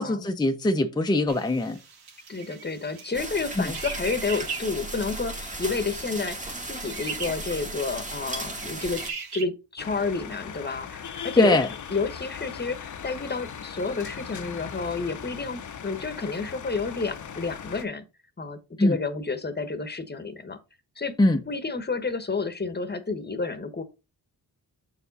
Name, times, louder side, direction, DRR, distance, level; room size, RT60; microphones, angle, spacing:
voice 1, 0.0-1.8 3.6-3.7 11.4-11.7 18.8-19.0 21.2-21.4, left 2 dB, 10° left, 0.6 m, -22 dB
sound 1, 1.3-9.4, right 5 dB, 80° right, 1.6 m, -40 dB
voice 2, 2.3-6.4 6.7-9.0 9.3-11.6 11.9-18.0 18.4-20.6 21.0-23.8, left 4 dB, 25° left, 1.0 m, -30 dB
sound 2, 3.1-9.1, right 2 dB, 20° right, 1.5 m, -36 dB
sound 3, 9.8-17.9, left 7 dB, 50° left, 0.7 m, -39 dB
6.8 x 4.6 x 4.0 m
wide cardioid pair, 100°, 38 cm